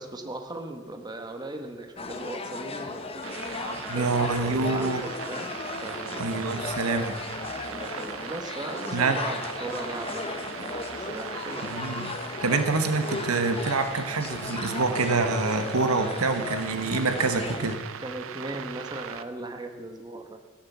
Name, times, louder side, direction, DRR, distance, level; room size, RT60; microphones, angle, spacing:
voice 1, 0.0-5.5 5.8-6.7 7.7-11.8 16.4-20.4, right 2 dB, 20° right, 5 dB, 1.0 m, -38 dB
sound 1, 2.0-17.8, left 3 dB, 30° left, 0.9 m, -36 dB
sound 2, 3.2-19.2, right 7 dB, 65° right, 0.6 m, -39 dB
voice 2, 3.9-5.0 6.2-7.2 8.9-9.2 11.7-12.1 12.4-17.8, right 3 dB, 85° right, 7 dB, 1.1 m, -26 dB
15.5 x 6.6 x 7.1 m, 1.3 s
head